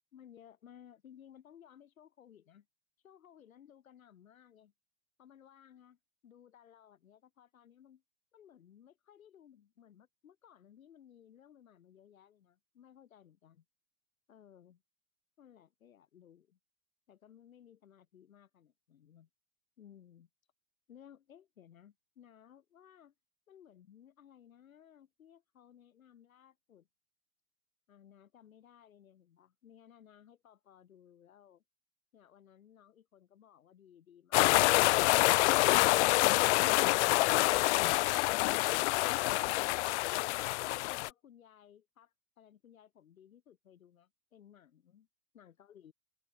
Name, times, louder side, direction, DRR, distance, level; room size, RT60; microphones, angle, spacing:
voice 1, 0.1-2.7 3.0-4.7 5.2-6.0 6.2-8.0 8.3-13.6 14.3-14.8 15.4-16.6 17.1-19.3 19.8-20.3 20.9-23.1 23.5-26.9 27.9-31.6 32.1-40.2 40.6-45.1 45.3-45.9, left 9 dB, 80° left, 4.3 m, -59 dB
sound 1, 34.3-41.1, left 21 dB, 60° left, 0.5 m, -27 dB
hypercardioid pair, 100°, 40 cm